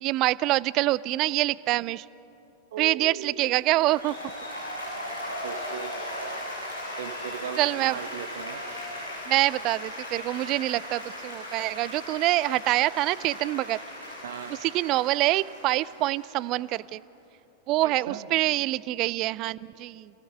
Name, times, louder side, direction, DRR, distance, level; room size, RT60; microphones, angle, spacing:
voice 1, 0.0-2.0 2.8-4.1 7.6-8.0 9.3-13.8 14.5-17.0 17.7-20.1, right 17 dB, 40° right, 21 dB, 0.4 m, -25 dB
voice 2, 2.7-3.5 5.3-6.5 7.0-8.6 14.2-14.5 17.8-18.3, right 9 dB, 60° right, 9 dB, 1.3 m, -38 dB
Applause, 3.6-16.8, left 1 dB, 90° right, 7.2 m, -38 dB
27.0 x 17.0 x 6.6 m, 2.9 s
figure-of-eight pair, 90°, 0 cm